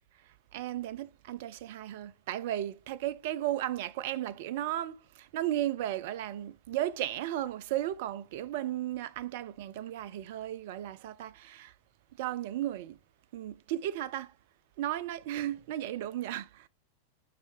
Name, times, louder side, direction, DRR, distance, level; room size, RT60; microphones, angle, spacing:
voice 1, 0.5-11.7 12.2-13.0 13.3-14.3 14.8-16.7, right 13 dB, 55° right, 0.4 m, -35 dB
4.8 x 4.3 x 4.7 m
figure-of-eight pair, 90°, 0 cm